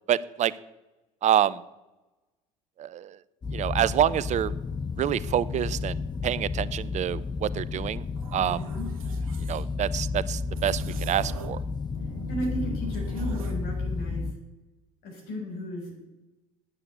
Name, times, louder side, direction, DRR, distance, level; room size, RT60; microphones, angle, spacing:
voice 1, 0.1-0.5 1.2-1.6 2.8-3.2 3.5-4.5 5.0-6.0 6.2-8.0 8.3-8.6 9.5-11.6, right 10 dB, 40° right, 19 dB, 0.7 m, -27 dB
sound 1, 3.4-14.3, left 4 dB, 25° left, 0.8 m, -32 dB
sound 2, 8.2-9.6 10.5-11.7 11.9-13.6, right 5 dB, 85° right, 1.3 m, -42 dB
voice 2, 8.3-8.9 12.3-14.3 15.0-16.0, equal, 65° left, 0 dB, 6.1 m, -35 dB
9.6 x 8.4 x 9.4 m, 1.0 s
hypercardioid pair, 65°, 17 cm